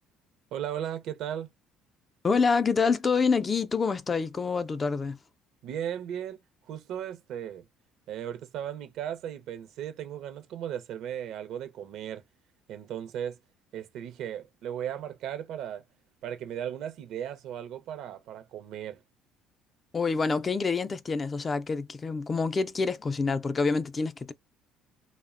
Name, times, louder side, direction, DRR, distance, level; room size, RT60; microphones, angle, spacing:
voice 1, 0.5-1.5 5.6-6.4 6.7-7.7 8.1-12.2 12.7-13.4 13.7-15.8 16.2-19.0, right 10 dB, 70° right, 0.5 m, -36 dB
voice 2, 2.2-5.2 19.9-24.3, left 4 dB, 30° left, 0.3 m, -27 dB
2.7 x 2.0 x 2.4 m
supercardioid pair, 90°, 0 cm